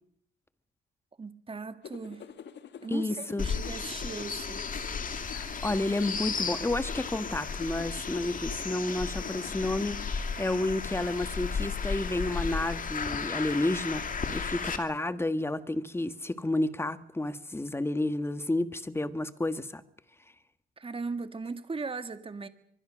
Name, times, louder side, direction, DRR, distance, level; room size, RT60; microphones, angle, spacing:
voice 1, 1.2-2.2 2.8-4.6 20.8-22.5, right 4 dB, 25° right, 2.0 m, -38 dB
sound 1, 1.8-10.1, left 7 dB, 60° left, 1.8 m, -47 dB
voice 2, 2.9-3.5 5.3-10.0 10.4-14.0 14.3-19.8, left 2 dB, 10° left, 1.5 m, -31 dB
sound 2, 3.4-14.8, left 5 dB, 45° left, 2.4 m, -34 dB
24.0 x 21.0 x 6.3 m
cardioid pair, 90°, 20 cm